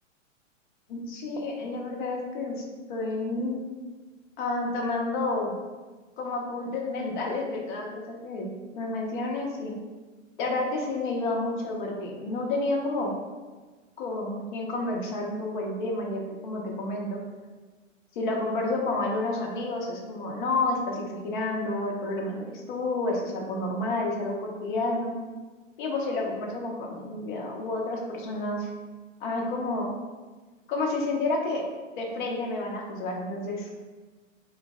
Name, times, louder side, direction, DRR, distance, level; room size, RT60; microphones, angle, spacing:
voice 1, 0.9-2.6 2.9-3.6 4.4-5.5 6.2-9.8 10.4-13.1 14.0-17.2 18.2-25.1 25.8-28.7 29.2-29.9 30.7-31.6 32.0-33.7, left 2 dB, 40° left, 0 dB, 0.6 m, -30 dB
3.1 x 2.0 x 3.5 m, 1.3 s
hypercardioid pair, 135°, 39 cm